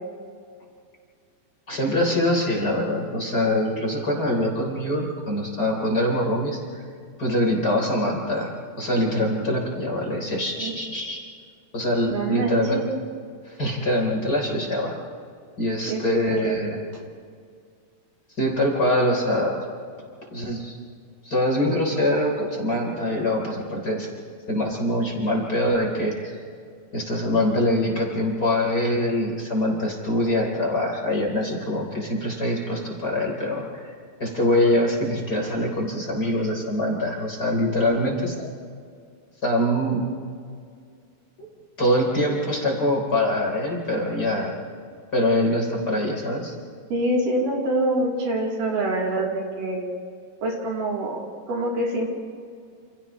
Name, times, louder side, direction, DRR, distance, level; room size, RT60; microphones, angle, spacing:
voice 1, 1.7-6.8 7.2-8.5 8.8-11.2 11.7-12.8 13.5-14.9 15.6-16.8 18.4-19.6 20.3-20.8 21.2-24.1 24.5-26.4 26.9-33.9 34.2-38.5 39.4-40.0 41.4-41.5 41.8-44.6 45.1-46.5, left 1 dB, 25° left, -1 dB, 3.7 m, -24 dB
voice 2, 12.1-12.8 15.9-16.0 16.3-16.6 37.8-38.1 46.9-49.8 50.4-52.1, right 1 dB, 60° right, -2 dB, 4.6 m, -26 dB
29.5 x 29.0 x 3.1 m, 2.2 s
omnidirectional pair, 4.2 m